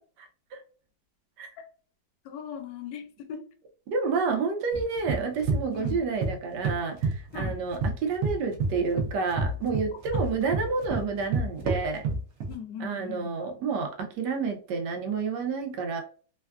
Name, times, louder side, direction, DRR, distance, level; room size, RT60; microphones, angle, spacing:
voice 1, 2.2-3.4 5.7-6.0 7.3-7.6 9.9-10.2 12.5-13.4, left 8 dB, 85° left, 1.2 m, -39 dB
voice 2, 3.9-12.0 12.8-16.0, right 5 dB, 85° right, 1.2 m, -29 dB
sound 1, 4.7-6.3 6.6-7.9 8.2-12.5, right 3 dB, 60° right, 0.9 m, -28 dB
3.3 x 2.2 x 2.3 m
omnidirectional pair, 1.8 m